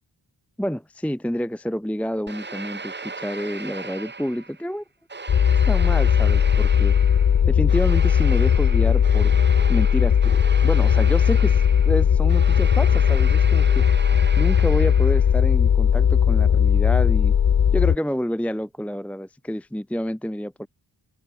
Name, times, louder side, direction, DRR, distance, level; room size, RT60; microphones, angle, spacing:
voice 1, 0.6-4.8 5.6-7.0 7.5-9.3 9.7-13.9 14.4-17.3 17.7-20.7, equal, 5° left, 0.9 m, -28 dB
sound 1, 2.3-4.7 5.1-15.4, right 4 dB, 25° right, 1.3 m, -37 dB
sound 2, 5.3-18.0, left 8 dB, 45° left, 0.7 m, -18 dB
wide cardioid pair, 180°, 43 cm